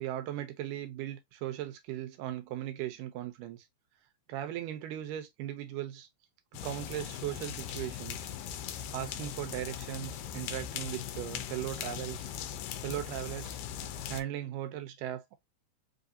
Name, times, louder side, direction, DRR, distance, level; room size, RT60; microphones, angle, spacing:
voice 1, 0.0-3.6 4.3-6.1 6.6-8.3 8.9-12.3 12.8-13.6 14.1-15.4, right 12 dB, 90° right, 2.3 m, -38 dB
sound 1, 6.5-14.2, left 9 dB, 85° left, 2.2 m, -40 dB
5.3 x 2.6 x 2.6 m
omnidirectional pair, 3.7 m